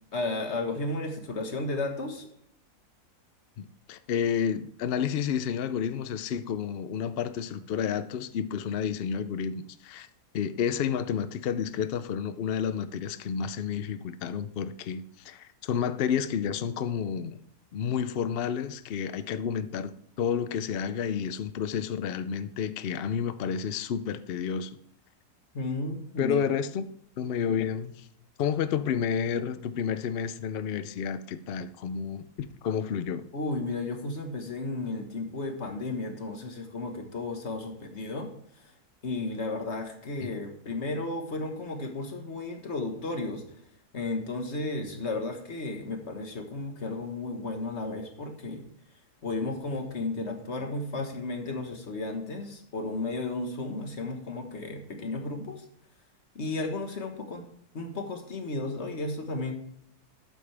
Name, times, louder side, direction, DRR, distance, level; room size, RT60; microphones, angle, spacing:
voice 1, 0.1-2.3 25.5-26.4 33.3-38.3 38.6-38.7 39.0-43.4 43.9-48.6 49.2-55.6 56.3-57.4 57.7-59.5, left 2 dB, 45° left, 1.7 m, -33 dB
voice 2, 3.6-10.1 10.3-17.4 17.7-24.8 26.2-26.8 27.2-28.1 28.4-33.2 40.2-40.3, left 7 dB, 80° left, 0.5 m, -30 dB
12.0 x 8.5 x 3.4 m
omnidirectional pair, 1.7 m